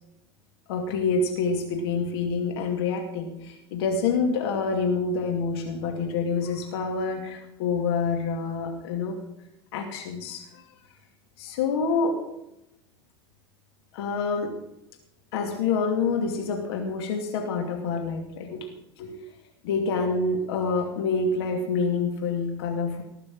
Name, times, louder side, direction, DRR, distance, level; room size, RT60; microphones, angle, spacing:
voice 1, 0.7-9.2 9.7-10.6 11.4-12.2 13.9-14.6 15.3-18.7 19.0-19.2 19.6-23.0, left 4 dB, 60° left, 2 dB, 2.6 m, -27 dB
19.5 x 6.6 x 7.7 m, 0.83 s
figure-of-eight pair, 85°, 15 cm